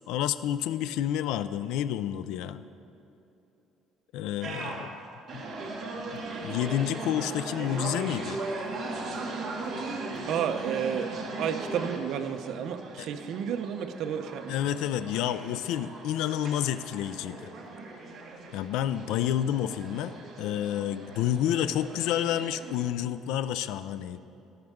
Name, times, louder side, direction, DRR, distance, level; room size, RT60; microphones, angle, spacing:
voice 1, 0.1-2.6 4.1-4.9 5.3-5.4 6.1-8.4 14.5-17.5 18.5-24.2, left 11 dB, 80° left, 13 dB, 0.4 m, -29 dB
sound 1, 4.4-22.9, right 3 dB, 35° right, 1.9 m, -38 dB
voice 2, 10.3-11.1 11.4-14.6, right 8 dB, 60° right, 7 dB, 0.7 m, -31 dB
13.0 x 12.5 x 3.6 m, 2.9 s
cardioid pair, 145°, 0 cm